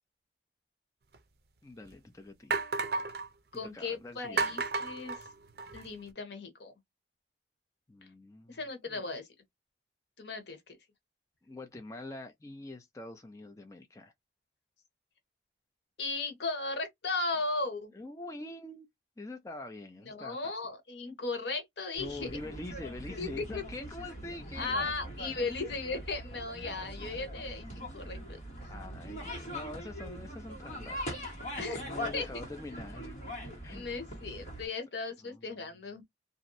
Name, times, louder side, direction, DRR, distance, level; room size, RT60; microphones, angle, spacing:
sound 1, 1.1-1.2 1.9-2.0 2.5-3.3 4.4-5.9, right 4 dB, 60° right, 0.5 m, -32 dB
voice 1, 1.6-2.5 3.5-4.6 7.9-8.6 8.9-9.0 11.4-14.1 17.9-18.9 19.2-20.4 22.0-24.7 25.3-25.6 28.7-31.2 31.8-33.3 33.6-34.0 35.2-35.6, left 2 dB, 20° left, 0.4 m, -45 dB
voice 2, 3.5-5.3 5.7-6.7 8.5-9.3 10.2-10.8 16.0-17.9 20.0-22.3 23.2-23.6 24.5-28.4 31.6-31.9 32.1-32.2 33.7-36.0, left 3 dB, 75° left, 1.0 m, -36 dB
sound 2, 21.9-34.7, equal, 40° left, 1.4 m, -42 dB
2.9 x 2.6 x 2.6 m
head